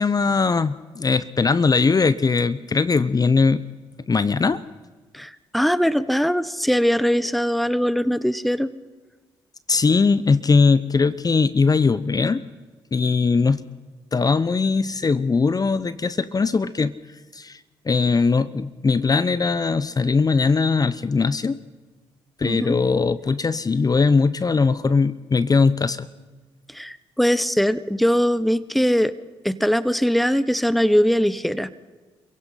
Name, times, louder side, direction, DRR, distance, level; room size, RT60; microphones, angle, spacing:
voice 1, 0.0-3.6 4.1-4.6 9.7-12.4 12.9-13.6 14.1-16.9 17.3-17.6 17.9-21.6 22.4-26.1, left 4 dB, 35° left, 16 dB, 0.8 m, -20 dB
voice 2, 5.1-8.7 22.4-22.7 26.7-29.1 29.4-31.7, equal, ahead, 16 dB, 1.1 m, -21 dB
28.5 x 16.5 x 5.8 m, 1.3 s
supercardioid pair, 50°, 11 cm